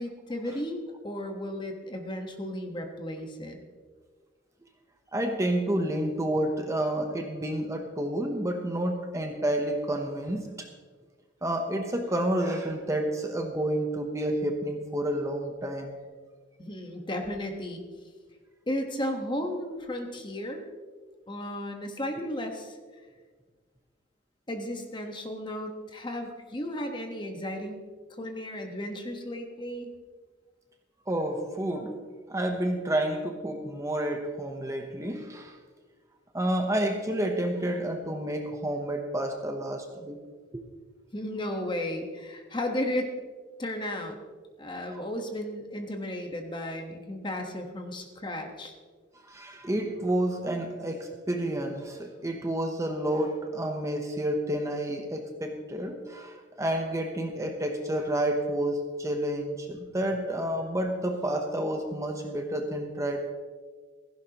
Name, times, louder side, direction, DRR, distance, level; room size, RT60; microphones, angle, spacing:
voice 1, 0.0-3.6 16.6-17.8 18.7-20.6 21.3-22.8 24.5-27.8 28.2-29.9 41.1-43.1 43.6-44.2 44.6-48.7, left 1 dB, 25° left, 4 dB, 1.3 m, -34 dB
voice 2, 5.1-10.7 11.4-15.9 31.1-35.6 36.3-40.2 40.5-40.6 49.3-63.3, right 1 dB, 15° right, 4 dB, 0.9 m, -30 dB
16.5 x 15.0 x 3.0 m, 1.5 s
head